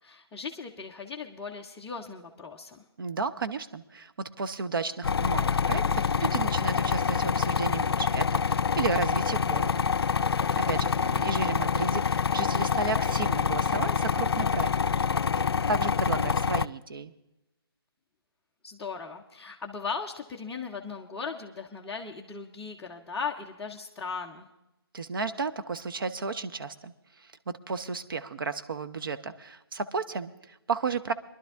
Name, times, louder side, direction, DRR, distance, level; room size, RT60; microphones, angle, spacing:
voice 1, 0.0-2.8 10.9-11.3 18.6-24.5, left 5 dB, 5° left, -5 dB, 0.5 m, -38 dB
voice 2, 3.0-9.9 10.6-14.7 15.7-17.1 24.9-31.1, right 4 dB, 60° right, 10 dB, 0.8 m, -33 dB
sound 1, 5.0-16.7, left 6 dB, 70° left, 0.4 m, -26 dB
20.5 x 11.5 x 3.5 m, 0.93 s
figure-of-eight pair, 150°, 13 cm